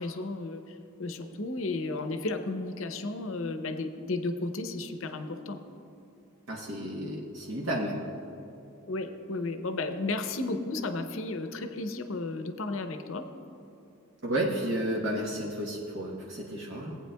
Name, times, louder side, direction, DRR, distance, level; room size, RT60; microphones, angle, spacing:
voice 1, 0.0-5.6 8.9-13.3, left 2 dB, 65° left, 8 dB, 0.7 m, -33 dB
voice 2, 6.5-8.1 14.2-17.0, right 1 dB, 60° right, -3 dB, 1.0 m, -32 dB
18.0 x 8.9 x 2.2 m, 3.0 s
head